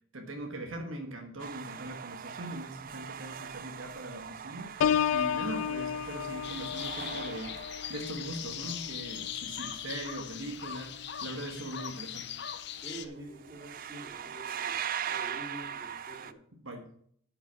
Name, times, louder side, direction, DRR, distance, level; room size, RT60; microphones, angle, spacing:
voice 1, 0.1-7.6 7.9-12.3 16.6-16.9, right 1 dB, 75° right, 3 dB, 1.5 m, -41 dB
sound 1, 1.4-8.5 12.8-13.0 13.3-16.3, right 8 dB, 45° right, 0.4 m, -40 dB
Piano, 4.8-10.4 10.9-11.2, left 8 dB, 85° left, 0.3 m, -33 dB
sound 2, 6.4-13.1, left 9 dB, 55° left, 0.7 m, -40 dB
voice 2, 12.8-16.4, right 1 dB, 20° right, -5 dB, 2.6 m, -46 dB
9.2 x 5.7 x 7.0 m, 0.63 s
head